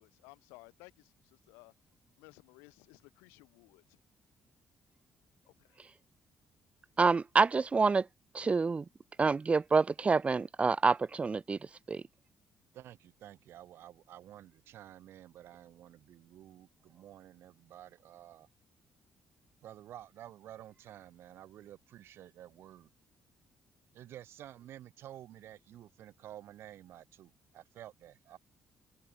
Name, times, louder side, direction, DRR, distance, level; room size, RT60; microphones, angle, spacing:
voice 1, 0.0-1.7 2.2-3.8 5.5-5.8, left 28 dB, 85° left, 3.6 m, -58 dB
voice 2, 7.0-8.1 8.3-8.9 9.2-11.6 11.9-12.0, right 4 dB, 30° right, 0.3 m, -27 dB
voice 3, 12.7-18.5 19.6-22.9 23.9-28.4, right 12 dB, 70° right, 6.0 m, -51 dB
hypercardioid pair, 50°, 4 cm